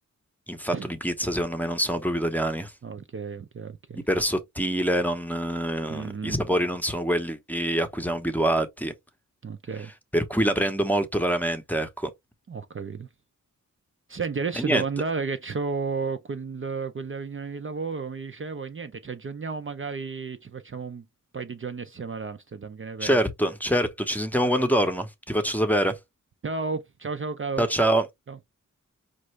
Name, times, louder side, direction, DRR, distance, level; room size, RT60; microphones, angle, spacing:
voice 1, 0.5-2.7 4.1-8.9 10.1-12.1 14.6-14.8 23.0-26.0 27.6-28.0, right 1 dB, 5° left, 0.8 m, -25 dB
voice 2, 2.8-4.1 5.9-6.6 9.4-9.9 12.5-13.1 14.1-21.1 21.3-23.2 24.4-24.7 26.4-27.7 28.3-28.4, right 4 dB, 40° right, 0.5 m, -33 dB
5.3 x 2.5 x 3.1 m
wide cardioid pair, 105°, 33 cm